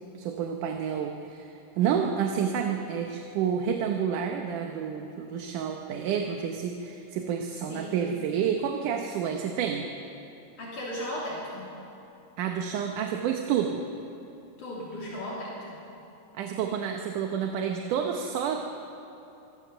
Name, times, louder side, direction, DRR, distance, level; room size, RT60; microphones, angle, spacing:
voice 1, 0.2-9.9 12.4-13.8 16.3-18.6, right 7 dB, 70° right, 3 dB, 2.3 m, -29 dB
voice 2, 7.7-8.0 10.6-11.7 14.6-15.8, left 1 dB, 60° left, -6 dB, 4.5 m, -36 dB
25.0 x 15.0 x 6.9 m, 3.0 s
omnidirectional pair, 4.2 m